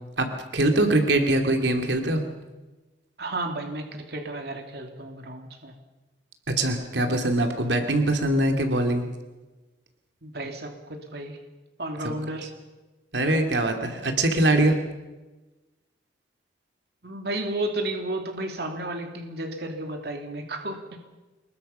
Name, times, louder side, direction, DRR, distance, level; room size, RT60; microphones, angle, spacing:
voice 1, 0.2-2.2 6.5-9.0 12.0-12.1 12.4-12.5 13.1-14.8, right 1 dB, 80° right, 4 dB, 2.8 m, -23 dB
voice 2, 3.2-5.7 10.2-11.4 11.8-12.5 17.0-20.8, right 1 dB, 60° right, 4 dB, 2.7 m, -32 dB
27.0 x 22.0 x 5.7 m, 1.2 s
head